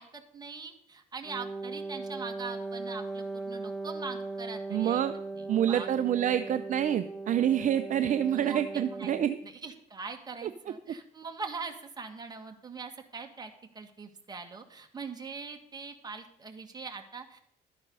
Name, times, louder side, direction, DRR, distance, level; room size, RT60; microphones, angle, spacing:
voice 1, 0.0-5.0 5.3-5.9 6.1-6.3 8.3-9.1 9.4-17.4, right 4 dB, 25° right, 4 dB, 2.0 m, -42 dB
Wind instrument woodwind instrument, 1.2-9.4, right 3 dB, ahead, 0.8 m, -38 dB
voice 2, 4.7-5.1 5.5-9.4 10.4-10.5, right 10 dB, 50° right, 10 dB, 0.6 m, -27 dB
13.0 x 9.7 x 5.5 m, 0.70 s
cardioid pair, 110°, 17 cm